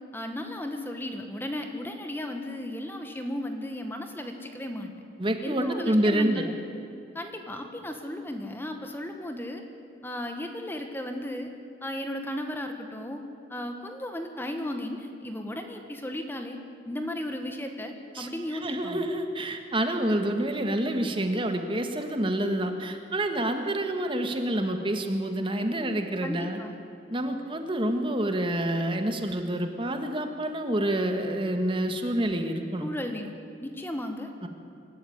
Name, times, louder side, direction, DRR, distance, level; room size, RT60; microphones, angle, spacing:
voice 1, 0.1-4.9 5.4-6.5 7.1-9.6 10.0-11.5 11.8-13.2 13.5-16.6 16.9-19.1 26.2-26.7 32.8-33.3 33.6-34.3, left 1 dB, 10° left, 5 dB, 1.5 m, -35 dB
voice 2, 5.2-6.5 18.1-26.6 27.1-32.9 34.4-34.5, right 1 dB, 30° right, 6 dB, 1.6 m, -28 dB
25.5 x 13.5 x 9.6 m, 2.5 s
head